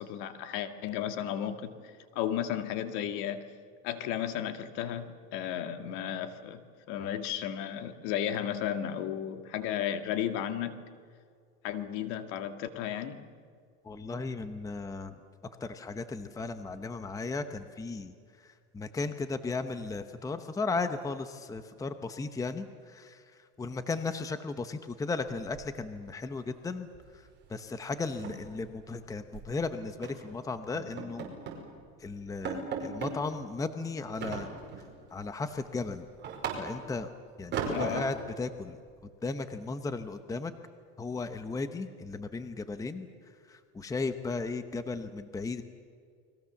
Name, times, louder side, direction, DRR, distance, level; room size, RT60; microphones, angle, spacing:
voice 1, 0.0-3.4 3.8-6.6 6.9-10.8 11.6-13.2 37.7-38.1, left 10 dB, 65° left, 8 dB, 2.1 m, -34 dB
voice 2, 13.8-15.1 15.6-26.9 27.1-31.3 32.0-34.5 35.1-36.1 36.6-37.1 37.4-38.8 39.2-40.5 41.0-43.1 43.5-45.6, left 3 dB, 10° left, 10 dB, 0.9 m, -36 dB
sound 1, 25.3-26.1 26.4-26.6 26.9-27.2 27.4-27.5 27.9-29.5 30.0-30.3 30.7-31.7 32.0-32.1 32.4-33.2 34.2-34.9 35.4-37.0 37.5-38.3, right 5 dB, 30° right, 5.4 m, -37 dB
30.0 x 22.0 x 7.2 m, 2.1 s
cardioid pair, 150°, 34 cm